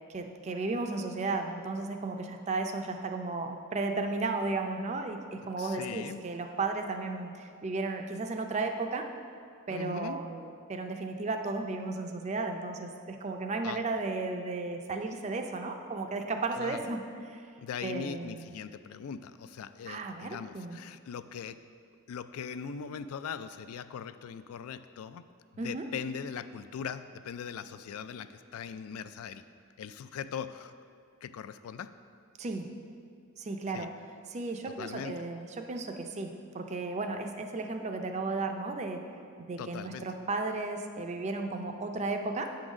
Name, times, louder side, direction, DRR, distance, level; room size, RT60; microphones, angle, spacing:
voice 1, 0.1-9.1 9.7-17.4 17.8-18.5 19.9-20.8 25.6-25.9 32.4-32.7 33.4-33.9 34.3-39.0 39.4-42.5, right 3 dB, 30° right, 4 dB, 0.4 m, -34 dB
voice 2, 5.6-6.2 9.7-10.2 13.6-13.8 16.6-16.8 17.6-21.6 22.1-25.2 25.5-29.4 29.8-30.7 31.2-31.9 33.7-33.9 34.8-35.1 39.6-40.1, left 7 dB, 80° left, 12 dB, 0.3 m, -40 dB
8.5 x 3.9 x 6.1 m, 2.2 s
head